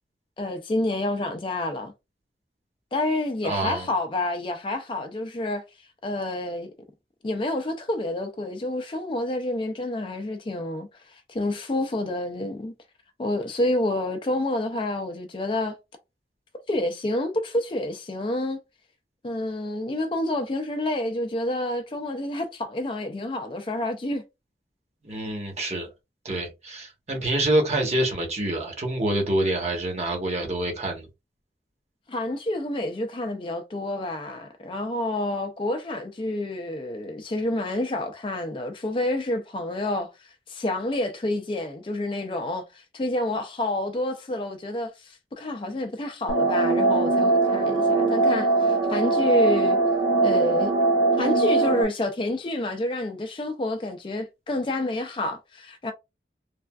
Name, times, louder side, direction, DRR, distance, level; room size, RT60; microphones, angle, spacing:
voice 1, 0.4-1.9 2.9-5.6 6.0-6.7 7.2-12.7 13.2-15.8 16.7-18.6 19.2-24.2 32.1-49.8 50.2-50.7 51.2-55.9, left 1 dB, 30° left, 0.4 m, -28 dB
voice 2, 3.4-3.9 25.1-25.9 26.2-31.1, right 1 dB, 40° right, 1.0 m, -26 dB
sound 1, 46.3-51.8, right 3 dB, 90° right, 0.8 m, -21 dB
3.3 x 2.4 x 2.2 m
head